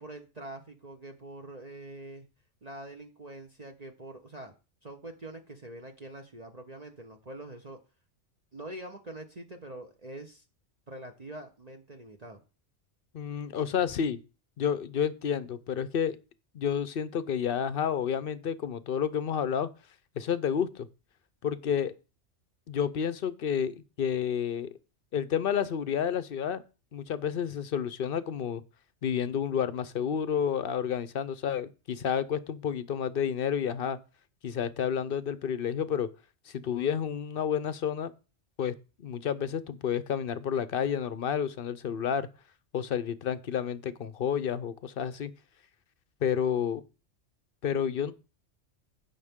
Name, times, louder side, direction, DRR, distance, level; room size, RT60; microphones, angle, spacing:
voice 1, 0.0-2.2 2.6-4.5 4.8-7.8 8.5-10.4 10.9-12.4, right 1 dB, 35° right, 1.1 m, -44 dB
voice 2, 13.1-14.2 14.6-16.2 16.5-19.7 20.2-20.9 21.4-21.9 22.7-24.7 25.1-26.6 26.9-28.6 29.0-34.0 34.4-36.1 36.5-38.1 38.6-42.3 42.7-45.3 46.2-46.8 47.6-48.1, left 8 dB, 55° left, 0.8 m, -30 dB
16.0 x 5.7 x 3.6 m
omnidirectional pair, 1.3 m